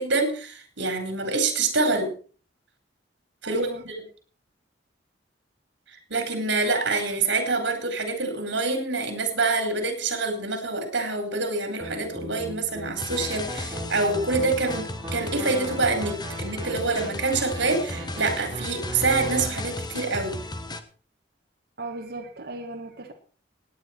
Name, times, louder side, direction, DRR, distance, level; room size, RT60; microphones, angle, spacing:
voice 1, 0.0-2.1 3.4-3.9 5.9-20.4, right 3 dB, 80° right, 6 dB, 4.3 m, -26 dB
voice 2, 3.4-3.8 21.8-23.1, right 2 dB, 60° right, 1 dB, 1.9 m, -37 dB
sound 1, 11.8-19.5, right 1 dB, 25° right, 3.5 m, -37 dB
sound 2, 13.0-20.8, left 2 dB, 25° left, 1.2 m, -35 dB
17.0 x 10.0 x 4.5 m, 0.40 s
head